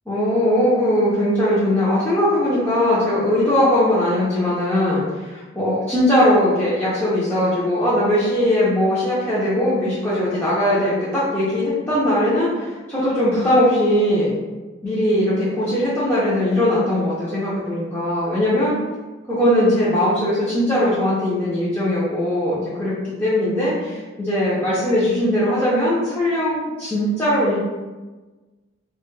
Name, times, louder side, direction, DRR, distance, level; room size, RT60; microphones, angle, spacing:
voice 1, 0.1-14.3 14.8-18.7 19.3-27.6, left 1 dB, 10° left, -11 dB, 0.5 m, -20 dB
2.1 x 2.0 x 3.0 m, 1.2 s
head